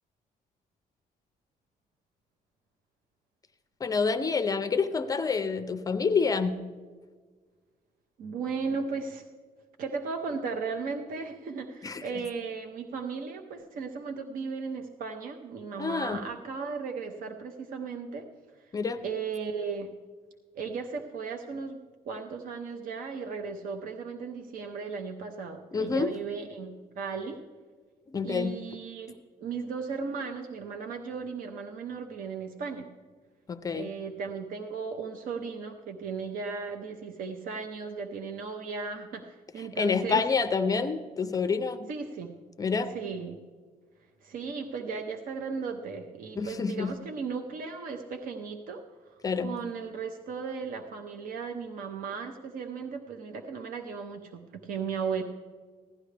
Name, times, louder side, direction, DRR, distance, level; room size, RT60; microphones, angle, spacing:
voice 1, 3.8-6.5 11.8-12.0 15.8-16.2 18.7-19.0 25.7-26.1 28.1-28.5 33.5-33.9 39.8-41.9 42.6-42.9 46.4-46.9 49.2-49.5, left 5 dB, 25° left, 9 dB, 0.4 m, -27 dB
voice 2, 8.2-9.3 9.8-18.3 18.5-18.8 19.0-19.9 20.5-21.8 22.1-27.4 28.2-32.9 33.7-40.3 41.9-42.3 42.9-43.4 44.2-55.2, right 5 dB, 65° right, 5 dB, 0.8 m, -36 dB
16.0 x 11.5 x 3.3 m, 1.5 s
cardioid pair, 180°, 15 cm